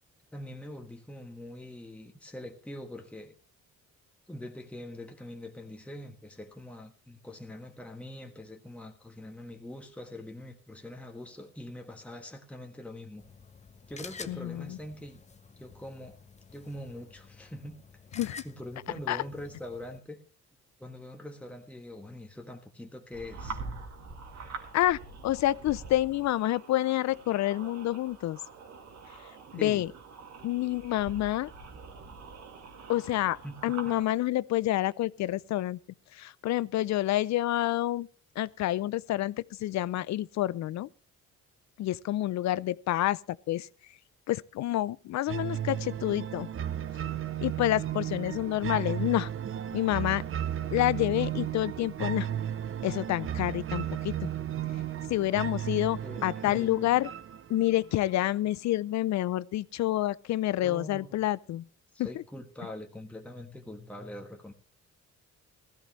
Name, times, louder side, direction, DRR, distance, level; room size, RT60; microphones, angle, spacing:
voice 1, 0.3-3.3 4.3-13.3 13.9-15.2 15.6-16.2 16.5-17.8 18.2-20.2 20.8-23.6 29.5-29.8 33.4-34.0 56.0-56.8 60.6-61.3 61.9-64.5, left 1 dB, 5° left, 1.4 m, -43 dB
sound 1, 13.2-20.0, left 5 dB, 25° left, 0.7 m, -50 dB
voice 2, 14.3-14.8 18.2-18.4 19.1-19.2 24.7-28.4 29.5-29.9 30.4-31.5 32.9-35.8 36.1-38.1 38.4-40.9 41.8-43.7 44.3-46.5 47.4-49.3 49.7-50.2 50.7-52.3 52.8-54.3 55.1-57.1 57.5-61.7 62.0-62.2, left 14 dB, 65° left, 0.5 m, -28 dB
sound 2, 23.1-34.1, right 4 dB, 65° right, 2.1 m, -45 dB
sound 3, 45.3-58.3, right 10 dB, 45° right, 0.7 m, -34 dB
16.0 x 14.0 x 3.1 m
cardioid pair, 90°, 30 cm